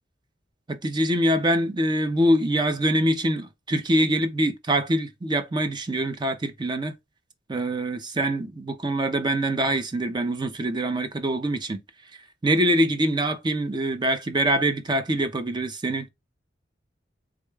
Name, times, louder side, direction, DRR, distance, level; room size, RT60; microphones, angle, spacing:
voice 1, 0.7-6.9 7.5-11.8 12.4-16.1, right 1 dB, 25° right, 0.5 m, -24 dB
3.7 x 2.2 x 3.2 m
head